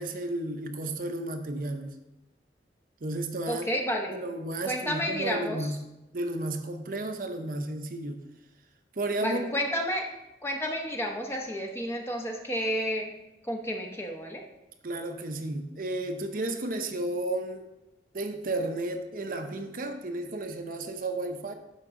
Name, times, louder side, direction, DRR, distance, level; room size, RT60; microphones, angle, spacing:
voice 1, 0.0-1.9 3.0-3.7 4.1-5.7 6.1-8.2 9.0-9.5 14.8-17.7 18.1-21.5, right 2 dB, 50° right, 6 dB, 0.6 m, -33 dB
voice 2, 3.5-4.2 4.6-5.8 9.2-10.1 10.4-13.1 13.4-14.4, equal, 15° left, 1 dB, 0.9 m, -31 dB
12.0 x 4.7 x 3.7 m, 0.98 s
head